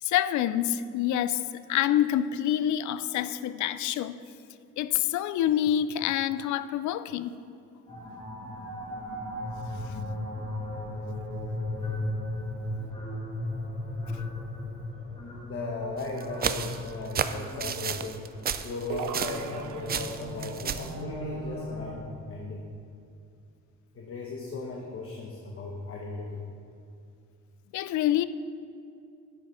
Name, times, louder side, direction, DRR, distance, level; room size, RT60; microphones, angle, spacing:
voice 1, 0.0-4.2 4.8-7.4 27.7-28.3, left 11 dB, 70° left, 14 dB, 0.4 m, -27 dB
sound 1, 7.9-21.9, left 1 dB, 20° left, 2.0 m, -37 dB
voice 2, 15.4-18.2 18.6-22.6 23.9-26.4, left 3 dB, 50° left, -1 dB, 1.1 m, -37 dB
sound 2, 16.0-19.6 19.9-20.9, right 7 dB, 30° right, 0.4 m, -32 dB
sound 3, 18.9-20.4, right 8 dB, 80° right, 0.6 m, -38 dB
9.8 x 6.0 x 4.8 m, 2.5 s
cardioid pair, 90°, 30 cm